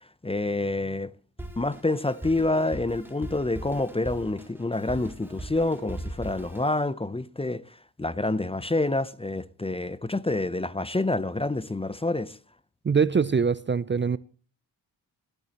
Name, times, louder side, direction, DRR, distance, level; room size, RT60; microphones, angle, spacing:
voice 1, 0.2-1.1 1.6-7.6 8.0-12.4, left 2 dB, 15° left, 0.7 m, -27 dB
Drum kit, 1.4-6.8, right 1 dB, 5° right, 4.2 m, -40 dB
voice 2, 12.8-14.2, right 6 dB, 30° right, 0.5 m, -23 dB
19.0 x 12.5 x 3.0 m
cardioid pair, 75°, 40 cm